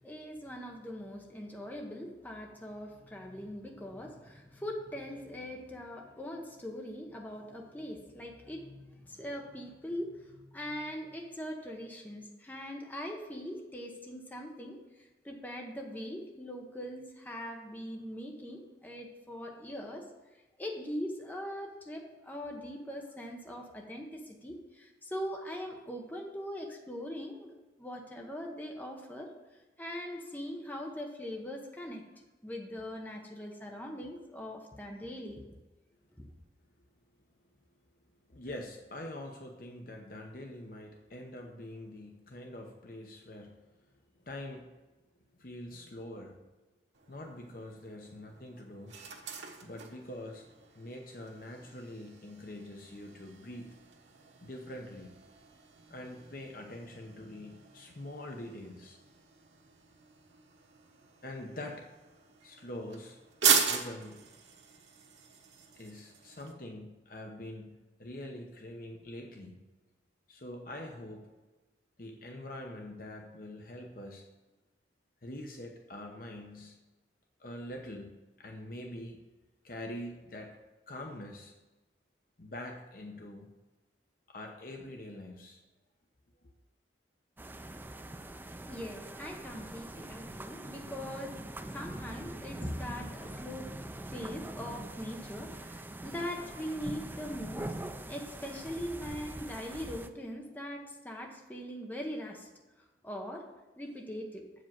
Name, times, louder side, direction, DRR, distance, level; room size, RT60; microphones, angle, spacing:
voice 1, 0.0-32.0 32.4-35.4 36.2-36.3 88.7-93.7 94.1-102.5 102.8-103.5 103.8-104.4, equal, 10° left, 1 dB, 0.9 m, -41 dB
voice 2, 38.3-43.9 44.2-44.7 45.4-46.4 47.1-49.0 49.6-50.5 50.7-53.7 54.4-55.1 55.9-59.0 61.2-61.9 62.4-63.2 63.6-64.2 65.7-67.7 68.0-69.6 70.3-71.3 72.0-74.2 75.2-76.8 77.4-78.1 78.4-79.2 79.6-80.6 80.9-81.5 82.4-83.5 84.3-85.6, left 1 dB, 50° left, 2 dB, 0.8 m, -44 dB
sound 1, 46.9-66.5, right 6 dB, 85° right, 1.2 m, -38 dB
sound 2, 87.4-100.1, right 1 dB, 10° right, 0.3 m, -43 dB
7.7 x 5.0 x 7.3 m, 1.1 s
head